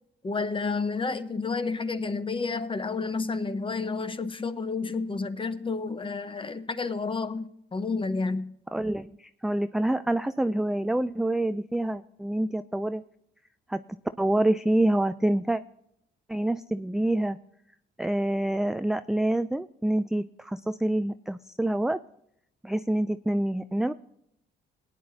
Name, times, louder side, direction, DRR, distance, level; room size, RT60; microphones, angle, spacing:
voice 1, 0.2-7.5 7.7-8.5, left 4 dB, 25° left, 11 dB, 1.0 m, -30 dB
voice 2, 8.7-13.0 13.7-13.8 14.2-15.6 16.3-17.4 18.0-22.0 22.6-23.9, right 1 dB, ahead, 11 dB, 0.3 m, -27 dB
18.5 x 9.6 x 2.8 m, 0.74 s
cardioid pair, 90°, 20 cm